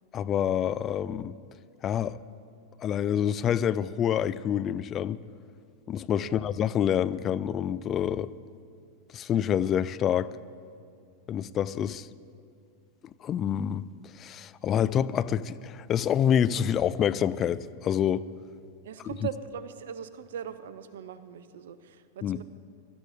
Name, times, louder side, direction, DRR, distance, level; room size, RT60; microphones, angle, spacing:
voice 1, 0.1-1.3 1.8-2.2 2.8-5.2 5.9-8.3 9.1-10.3 11.3-12.1 13.2-13.9 14.2-18.2 22.2-22.4, left 9 dB, 30° left, 15 dB, 0.3 m, -27 dB
voice 2, 6.1-6.4 18.8-22.4, right 8 dB, 60° right, 13 dB, 0.6 m, -40 dB
23.0 x 13.0 x 2.6 m, 2.4 s
figure-of-eight pair, 90°, 0 cm